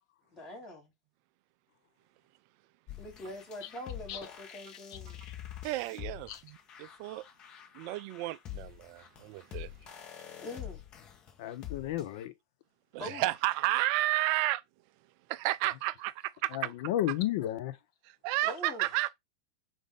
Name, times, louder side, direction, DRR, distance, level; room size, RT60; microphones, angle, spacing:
voice 1, 0.3-0.9 3.0-5.2 10.4-10.8 13.0-13.3 18.4-18.9, left 1 dB, 25° left, 2.5 m, -43 dB
sound 1, 2.9-12.2, left 11 dB, 40° left, 1.2 m, -46 dB
voice 2, 5.6-7.2 7.7-9.7 12.9-14.6 15.3-16.7 18.2-19.1, right 17 dB, 50° right, 0.3 m, -32 dB
voice 3, 11.4-12.3 16.5-17.8, left 13 dB, 60° left, 0.6 m, -32 dB
5.0 x 2.6 x 3.4 m
hypercardioid pair, 100°, 2 cm